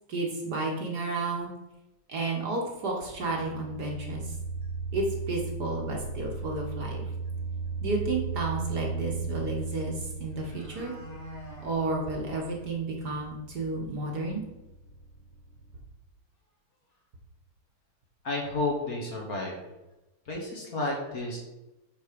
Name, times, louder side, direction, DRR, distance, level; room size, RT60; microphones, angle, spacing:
voice 1, 0.1-1.5 2.1-4.3 4.9-7.0 7.8-11.0 11.6-14.4, right 2 dB, 55° right, 0 dB, 1.7 m, -32 dB
sound 1, 1.9-2.0 2.3-2.4 3.4-3.5 4.1-4.3 4.6-4.7 5.1-5.5 6.9-7.0 7.3-7.4 9.7-9.8 10.1-11.7 12.1-12.2 12.6-12.7 13.1-13.2 13.5-13.6 16.4-16.5 16.9-17.0 17.7-17.8 18.3-18.5 18.8-19.6 19.9-20.0, left 1 dB, 75° left, 3.2 m, -48 dB
sound 2, 3.1-15.8, right 4 dB, 30° left, 2.5 m, -37 dB
voice 2, 18.2-19.7 20.3-21.4, left 2 dB, 45° left, -1 dB, 1.8 m, -31 dB
8.4 x 4.3 x 5.1 m, 0.99 s
omnidirectional pair, 2.3 m